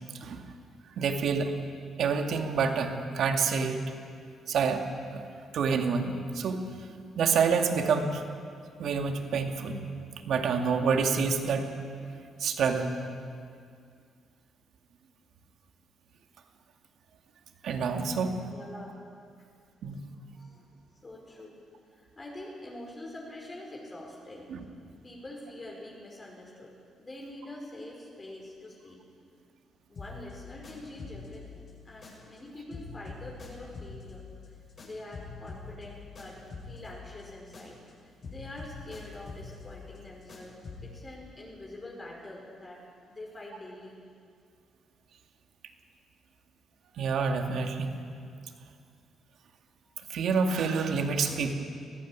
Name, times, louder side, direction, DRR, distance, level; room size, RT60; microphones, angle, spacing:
voice 1, 1.0-1.5 2.0-3.8 4.5-4.8 5.1-5.2 5.5-6.6 7.2-8.2 8.8-9.8 10.3-11.8 12.4-13.0 17.6-18.3 19.8-20.1 24.5-24.6 47.0-47.9 50.1-51.5, right 5 dB, 70° right, 4 dB, 2.3 m, -27 dB
voice 2, 18.4-19.0 19.4-19.5 20.3-20.6 21.0-21.6 21.9-24.5 25.0-29.0 29.9-34.2 34.8-36.4 36.7-42.8 43.1-44.0, left 1 dB, 25° left, -2 dB, 5.4 m, -45 dB
sound 1, 29.9-32.4 32.7-37.9 38.2-41.0, left 4 dB, 45° left, 7.2 m, -45 dB
21.5 x 15.0 x 9.6 m, 2.3 s
cardioid pair, 90°, 0 cm